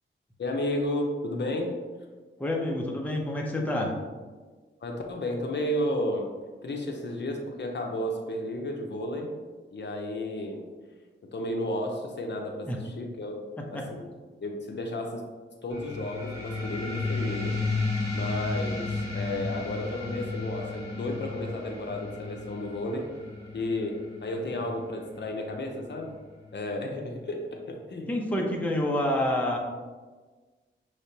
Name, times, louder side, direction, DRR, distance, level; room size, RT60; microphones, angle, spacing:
voice 1, 0.4-1.8 4.8-6.3 6.6-9.3 9.7-10.7 11.3-14.0 14.4-15.2 15.6-17.6 18.1-23.1 23.5-26.1 26.5-28.1 28.4-28.5, left 1 dB, 55° left, 2 dB, 0.6 m, -32 dB
voice 2, 2.4-3.9 12.7-12.8 13.6-13.9 28.1-29.6, left 1 dB, 5° left, -1 dB, 0.6 m, -28 dB
sound 1, 15.7-26.7, left 3 dB, 15° right, 1.5 m, -34 dB
5.8 x 3.3 x 2.8 m, 1.4 s
wide cardioid pair, 110°, 21 cm